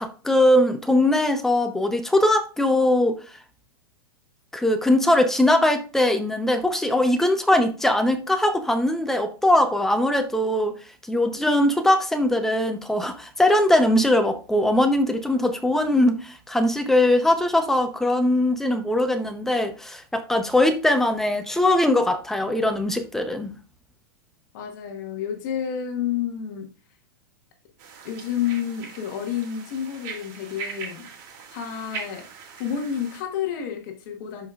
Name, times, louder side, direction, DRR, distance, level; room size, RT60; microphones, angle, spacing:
voice 1, 0.0-3.2 4.5-10.7 11.1-23.5, left 1 dB, 5° left, 0.7 m, -21 dB
voice 2, 24.5-26.7 28.0-31.1 31.5-32.3 32.6-34.5, left 9 dB, 55° left, 1.3 m, -30 dB
sound 1, 27.8-33.2, right 5 dB, 50° right, 2.7 m, -40 dB
11.5 x 4.9 x 2.4 m
supercardioid pair, 145°, 12 cm